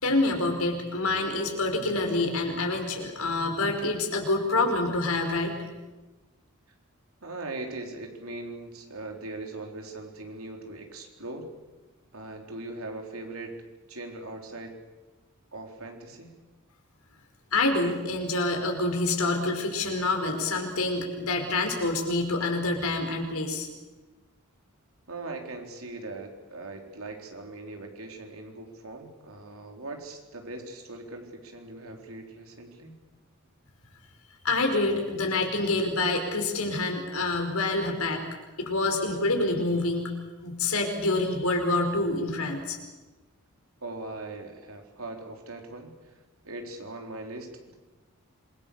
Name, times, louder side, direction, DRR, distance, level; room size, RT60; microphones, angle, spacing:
voice 1, 0.0-5.6 17.5-23.7 34.4-38.2 38.6-40.2 40.4-42.8, left 2 dB, 85° left, 3 dB, 5.2 m, -27 dB
voice 2, 7.2-11.5 12.1-13.5 13.9-14.7 15.5-16.4 25.1-33.0 43.8-45.9 46.4-47.7, right 2 dB, 70° right, 3 dB, 4.2 m, -40 dB
27.0 x 23.0 x 7.1 m, 1.2 s
head